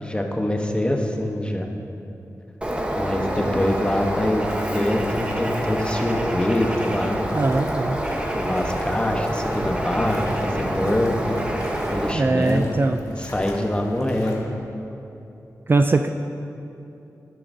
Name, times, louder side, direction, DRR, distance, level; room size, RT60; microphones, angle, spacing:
voice 1, 0.0-1.7 3.0-7.2 8.3-11.4 11.9-12.7 13.2-14.4, left 1 dB, 15° left, 2 dB, 1.1 m, -24 dB
Bird, 2.6-12.1, right 1 dB, 15° right, 1.0 m, -27 dB
sound 1, 3.6-14.4, left 2 dB, 70° left, 1.3 m, -41 dB
voice 2, 7.3-8.0 12.1-13.0 15.7-16.1, right 3 dB, 35° right, 7 dB, 0.4 m, -20 dB
11.5 x 10.5 x 2.7 m, 2.8 s
cardioid pair, 55°, 6 cm